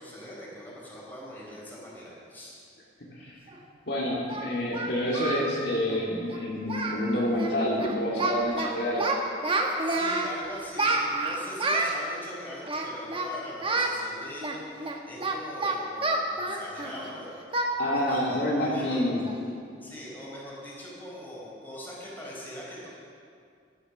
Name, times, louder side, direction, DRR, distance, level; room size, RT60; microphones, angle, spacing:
voice 1, 0.0-2.6 9.8-17.3 17.9-19.1 19.8-22.9, equal, 10° left, -5 dB, 4.4 m, -41 dB
Singing, 3.5-3.6 4.3-5.5 5.8-6.0 6.3-6.4 6.7-7.0 7.3-7.5 7.8-8.7 9.0-10.3 10.8-12.0 12.6-13.3 13.6-13.9 14.4-17.1 17.5-17.7 18.1-18.3 18.7-18.8 19.3-19.5, right 2 dB, 30° right, 1.3 m, -29 dB
voice 2, 3.9-9.1 17.8-19.2, left 1 dB, 60° left, -5 dB, 2.7 m, -28 dB
14.5 x 11.5 x 6.5 m, 2.3 s
head